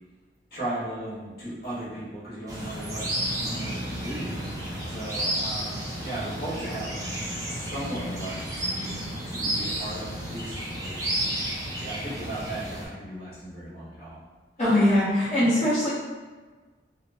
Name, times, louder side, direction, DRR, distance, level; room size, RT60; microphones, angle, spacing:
voice 1, 0.5-7.1 7.5-11.3 11.8-14.2, right 1 dB, 60° left, -9 dB, 1.1 m, -37 dB
sound 1, 2.5-12.9, right 1 dB, 20° right, 0.5 m, -32 dB
voice 2, 14.6-15.9, left 1 dB, 40° left, -13 dB, 0.7 m, -21 dB
2.8 x 2.1 x 2.6 m, 1.4 s
head